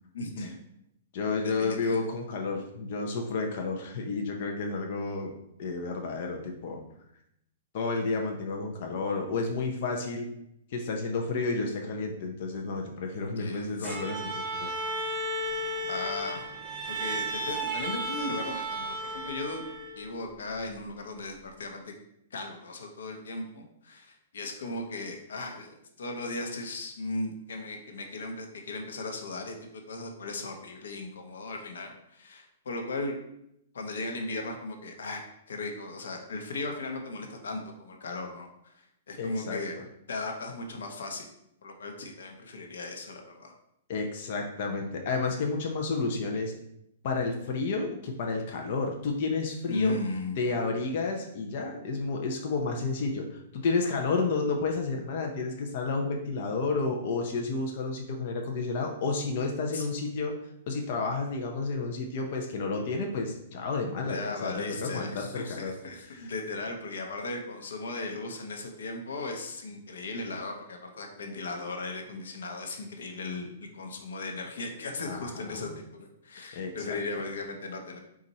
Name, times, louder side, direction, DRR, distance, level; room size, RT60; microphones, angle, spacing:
voice 1, 0.1-0.5 1.4-2.0 13.4-14.0 15.8-16.5 16.9-19.6 20.0-21.9 22.3-33.2 33.7-35.2 35.5-39.8 40.1-41.3 41.6-43.5 49.7-50.4 59.7-59.9 64.0-78.0, left 2 dB, 90° left, 3 dB, 0.8 m, -37 dB
voice 2, 1.1-5.3 5.6-6.8 7.7-10.3 10.7-14.7 39.2-39.6 43.9-46.5 47.0-49.9 50.4-60.3 60.7-65.7 66.1-66.3 75.0-75.7 76.5-77.0, left 3 dB, 50° left, 2 dB, 0.5 m, -31 dB
Bowed string instrument, 13.8-20.1, right 1 dB, 20° right, 0.7 m, -34 dB
4.0 x 2.4 x 4.1 m, 0.78 s
hypercardioid pair, 160°, 0 cm